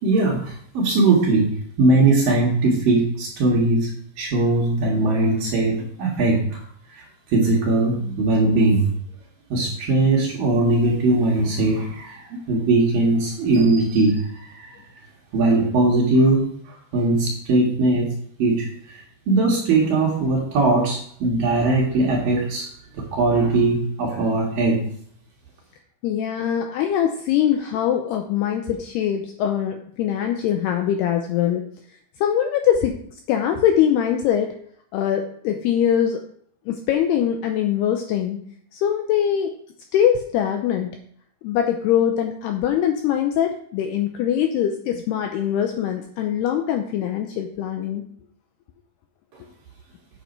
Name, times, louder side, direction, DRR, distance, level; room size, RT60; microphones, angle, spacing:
voice 1, 0.0-1.5 1.8-3.9 4.2-6.6 6.9-8.9 9.5-14.7 15.3-18.1 18.4-22.7 22.9-24.8, right 2 dB, 60° right, -1 dB, 2.8 m, -20 dB
voice 2, 26.0-31.6 32.2-33.0 33.3-34.6 34.9-36.2 36.7-38.4 38.7-39.5 39.9-40.9 41.4-48.0, left 9 dB, 85° left, 5 dB, 2.4 m, -22 dB
8.3 x 7.7 x 5.3 m, 0.63 s
omnidirectional pair, 5.5 m